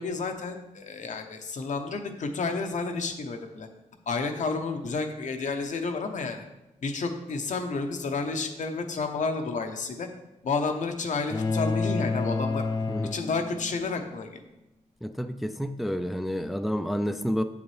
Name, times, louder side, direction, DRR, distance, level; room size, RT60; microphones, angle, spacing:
voice 1, 0.0-3.7 4.1-6.4 6.8-10.1 10.4-12.7 13.1-14.4, left 4 dB, 70° left, 5 dB, 0.9 m, -31 dB
sound 1, 11.3-13.8, left 3 dB, 30° left, 0.6 m, -29 dB
voice 2, 15.0-17.4, equal, ahead, 9 dB, 0.3 m, -29 dB
7.9 x 7.1 x 3.2 m, 0.97 s
wide cardioid pair, 105°, 13 cm